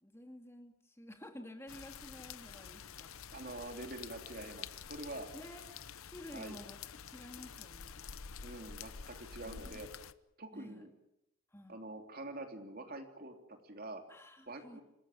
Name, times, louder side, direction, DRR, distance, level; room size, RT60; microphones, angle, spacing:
voice 1, 0.0-3.1 5.3-5.6 6.0-6.8 7.1-8.0 9.4-9.9 10.5-10.9 11.5-11.8 14.1-14.8, left 1 dB, 10° left, 5 dB, 2.5 m, -51 dB
sound 1, 1.7-10.1, left 7 dB, 80° left, 0.9 m, -49 dB
voice 2, 3.3-5.3 6.3-6.6 8.4-9.9 10.4-10.9 11.7-14.0 14.5-14.8, right 2 dB, 45° right, 5 dB, 3.2 m, -46 dB
26.5 x 15.0 x 9.3 m, 0.87 s
head